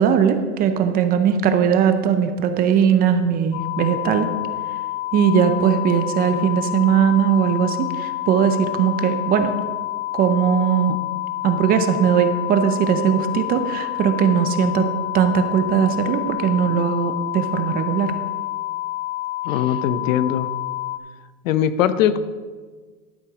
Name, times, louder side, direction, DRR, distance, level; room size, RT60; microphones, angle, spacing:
voice 1, 0.0-4.3 5.1-9.6 10.1-11.0 11.4-14.9 15.1-18.1, right 7 dB, 20° right, 8 dB, 0.6 m, -19 dB
sound 1, 3.5-21.0, left 16 dB, 35° left, 0.6 m, -28 dB
voice 2, 19.4-20.5 21.4-22.2, left 10 dB, 70° left, 14 dB, 0.8 m, -20 dB
12.0 x 7.6 x 4.9 m, 1.5 s
supercardioid pair, 145°, 40 cm